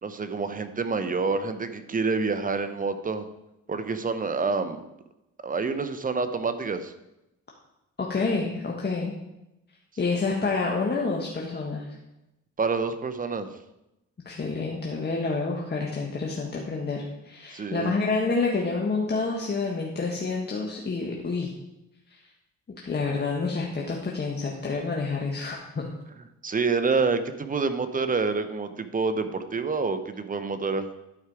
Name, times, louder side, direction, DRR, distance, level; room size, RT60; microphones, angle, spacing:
voice 1, 0.0-3.3 3.7-4.8 5.4-6.9 12.6-13.5 17.5-18.0 26.4-30.9, right 4 dB, 30° right, 9 dB, 0.8 m, -27 dB
voice 2, 8.0-9.1 10.0-12.0 14.2-21.5 22.1-22.2 22.8-25.9, left 4 dB, 35° left, -2 dB, 1.4 m, -28 dB
11.5 x 4.9 x 4.8 m, 0.91 s
cardioid pair, 90°, 30 cm